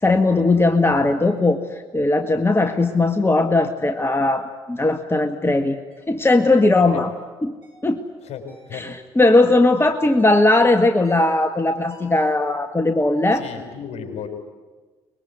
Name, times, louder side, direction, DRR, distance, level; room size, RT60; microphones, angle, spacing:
voice 1, 0.0-5.8 6.1-7.1 7.4-7.5 7.8-8.0 8.7-13.4, left 2 dB, 15° left, 7 dB, 1.9 m, -18 dB
sound 1, 5.9-6.1 6.8-7.0 7.6-7.9 8.5-8.7 9.3-9.6 10.2-10.5 11.0-11.4 11.9-12.3, right 1 dB, 85° right, 7.5 m, -49 dB
voice 2, 8.2-8.9 13.3-14.3, left 7 dB, 55° left, 5 dB, 5.7 m, -34 dB
24.5 x 21.5 x 9.6 m, 1.3 s
hypercardioid pair, 50°, 13 cm